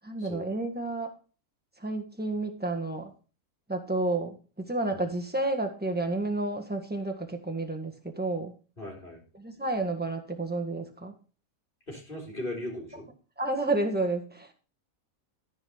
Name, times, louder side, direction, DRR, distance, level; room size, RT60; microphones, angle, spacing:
voice 1, 0.0-1.1 1.8-3.1 3.7-8.5 9.4-11.1 13.4-14.5, right 2 dB, 5° right, 3 dB, 1.4 m, -30 dB
voice 2, 8.8-9.2 11.9-13.1, left 1 dB, 35° left, -2 dB, 3.7 m, -38 dB
14.0 x 5.4 x 5.5 m, 0.36 s
omnidirectional pair, 1.6 m